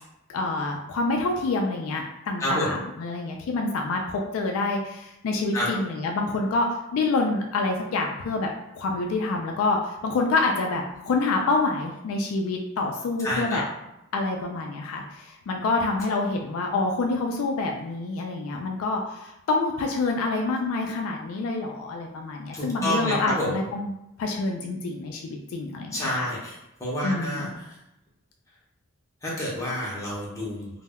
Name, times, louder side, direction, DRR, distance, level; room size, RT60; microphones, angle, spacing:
voice 1, 0.3-8.5 8.8-13.6 14.1-23.9 24.2-26.3 27.0-27.5, left 3 dB, 80° left, 2 dB, 0.3 m, -27 dB
voice 2, 2.4-2.7 5.5-5.7 13.2-13.6 22.5-23.6 25.9-27.8 29.2-30.7, left 1 dB, 15° left, -6 dB, 0.5 m, -29 dB
2.1 x 2.0 x 3.4 m, 0.90 s
head